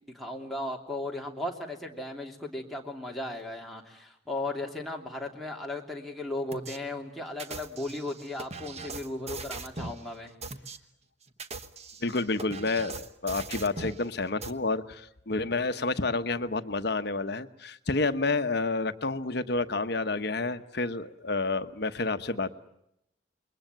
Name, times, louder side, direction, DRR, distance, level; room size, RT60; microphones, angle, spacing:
voice 1, 0.1-10.3, left 2 dB, ahead, -1 dB, 3.0 m, -36 dB
sound 1, 6.5-6.8 7.4-10.0 10.4-10.8 11.3-14.0 14.4-14.5, right 3 dB, 35° right, 1.3 m, -40 dB
voice 2, 12.0-22.7, left 3 dB, 60° left, 10 dB, 1.1 m, -29 dB
28.5 x 22.0 x 9.1 m, 0.80 s
head